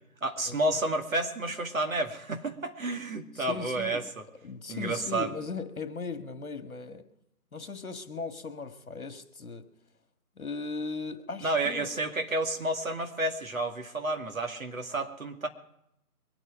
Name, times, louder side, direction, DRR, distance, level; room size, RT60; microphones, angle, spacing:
voice 1, 0.2-4.0 4.7-5.3 11.4-15.5, right 2 dB, 60° right, 4 dB, 2.3 m, -30 dB
voice 2, 3.3-4.0 4.4-7.0 7.5-9.7 10.4-11.9, left 4 dB, 65° left, 8 dB, 1.9 m, -38 dB
23.5 x 9.1 x 5.1 m, 0.78 s
figure-of-eight pair, 155°, 46 cm